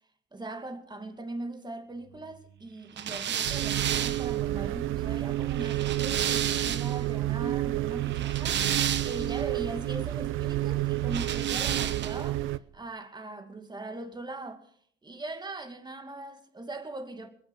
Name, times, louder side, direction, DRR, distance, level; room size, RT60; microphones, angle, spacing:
voice 1, 0.3-14.7 15.0-17.3, right 2 dB, 20° right, 2.3 m, -40 dB
sound 1, 3.0-7.1 8.0-9.4 11.1-12.3, right 9 dB, 65° right, 1.1 m, -32 dB
sound 2, 3.4-12.6, right 15 dB, 85° right, 0.6 m, -30 dB
21.0 x 9.6 x 6.4 m
cardioid pair, 90°, 20 cm